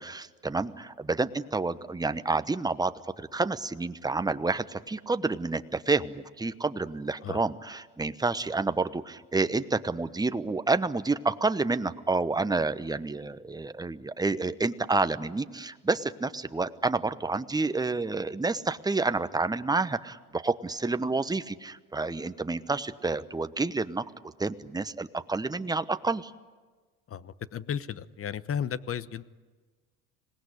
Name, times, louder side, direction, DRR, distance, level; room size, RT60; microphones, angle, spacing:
voice 1, 0.0-26.3, right 3 dB, 10° right, 11 dB, 1.0 m, -29 dB
voice 2, 27.1-29.2, left 8 dB, 30° left, 16 dB, 1.0 m, -34 dB
26.0 x 19.0 x 10.0 m, 1.4 s
hypercardioid pair, 85°, 44 cm